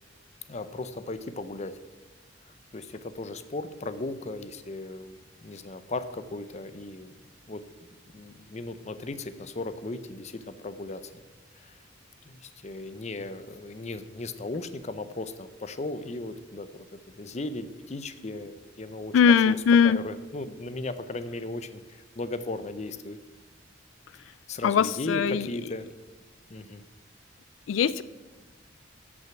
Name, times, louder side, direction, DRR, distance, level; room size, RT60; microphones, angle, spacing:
voice 1, 0.5-1.7 2.7-5.2 5.4-7.1 7.5-7.6 8.1-11.0 11.6-11.8 12.3-16.9 17.2-23.2 24.5-25.9 26.5-26.8, left 2 dB, 35° left, 12 dB, 0.6 m, -36 dB
voice 2, 19.1-20.0 24.6-25.5 27.7-28.0, left 6 dB, 90° left, 18 dB, 0.3 m, -20 dB
13.5 x 6.2 x 5.8 m, 1.3 s
head